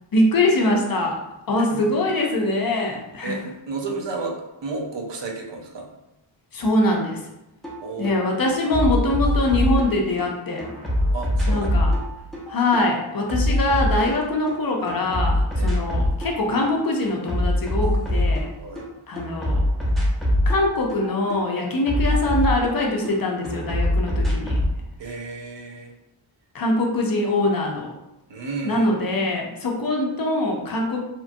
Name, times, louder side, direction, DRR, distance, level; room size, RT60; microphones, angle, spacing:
voice 1, 0.1-1.2 1.5-3.4 6.5-7.2 8.0-10.7 11.5-11.9 12.5-18.5 19.1-19.6 20.5-24.6 26.5-27.9 28.6-31.0, left 2 dB, 45° left, 0 dB, 0.5 m, -23 dB
voice 2, 3.2-4.4 4.6-5.9 7.8-8.3 11.1-11.7 15.5-15.7 18.6-18.8 25.0-25.9 28.3-28.9, right 3 dB, 60° right, 1 dB, 0.6 m, -32 dB
sound 1, 7.6-7.8 8.0-10.3 10.6-14.6 14.9-16.3 16.6-18.9 19.2-23.1 23.4-24.7, left 1 dB, ahead, 0.5 m, -23 dB
2.9 x 2.3 x 2.5 m, 0.92 s
wide cardioid pair, 125°, 49 cm